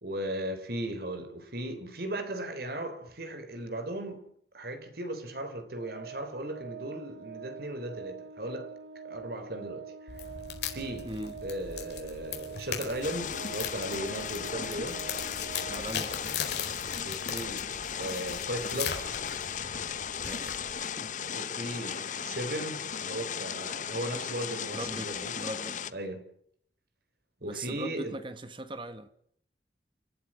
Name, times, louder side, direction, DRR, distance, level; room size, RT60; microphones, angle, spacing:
voice 1, 0.0-4.3 4.5-8.8 9.0-10.2 10.7-11.1 11.4-15.0 17.0-19.2 21.3-25.3 25.9-26.2 27.4-28.2, right 1 dB, 55° right, 3.6 m, -37 dB
Organ, 5.8-16.5, right 6 dB, 85° right, 0.8 m, -45 dB
sound 1, 10.1-20.9, left 7 dB, 65° left, 4.5 m, -39 dB
voice 2, 11.0-11.4 15.7-16.2 20.2-21.1 21.8-22.1 24.7-25.8 27.5-29.1, right 1 dB, 30° right, 1.5 m, -40 dB
sound 2, 13.0-25.9, left 7 dB, 45° left, 0.8 m, -36 dB
29.5 x 12.5 x 8.6 m
head